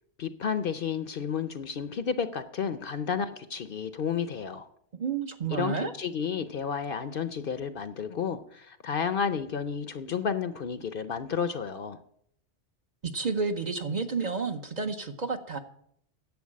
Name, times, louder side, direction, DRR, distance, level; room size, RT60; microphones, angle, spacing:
voice 1, 0.2-4.7 5.5-12.0, left 6 dB, 55° left, 12 dB, 0.8 m, -31 dB
voice 2, 4.9-5.9 13.0-15.6, right 4 dB, 40° right, 6 dB, 0.9 m, -31 dB
10.5 x 7.8 x 7.5 m, 0.69 s
omnidirectional pair, 1.2 m